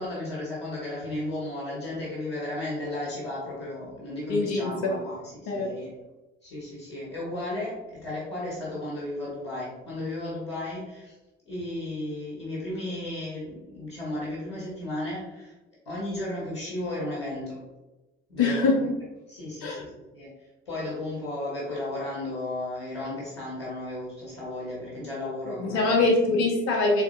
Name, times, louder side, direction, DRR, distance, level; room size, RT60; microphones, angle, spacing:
voice 1, 0.0-5.9 6.4-7.7 8.0-11.1 11.5-15.5 15.8-17.7 18.3-18.9 19.3-20.3 20.6-26.0, left 1 dB, 80° left, -7 dB, 1.3 m, -34 dB
voice 2, 4.3-4.9 5.5-5.7 18.4-18.8 19.6-19.8 25.6-27.0, left 3 dB, 65° left, 0 dB, 0.9 m, -23 dB
3.6 x 3.2 x 2.6 m, 1.1 s
figure-of-eight pair, 50°, 29 cm